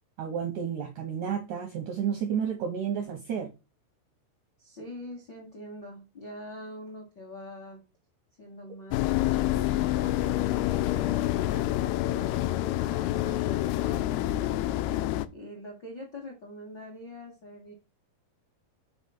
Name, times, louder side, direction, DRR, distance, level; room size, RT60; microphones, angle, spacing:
voice 1, 0.2-3.5, right 8 dB, 80° right, 1.8 m, -31 dB
voice 2, 4.6-7.8 8.4-14.8 15.3-17.7, left 1 dB, 60° left, 1.1 m, -44 dB
sound 1, 8.9-15.3, left 14 dB, 80° left, 2.4 m, -27 dB
6.2 x 4.0 x 5.6 m
omnidirectional pair, 4.7 m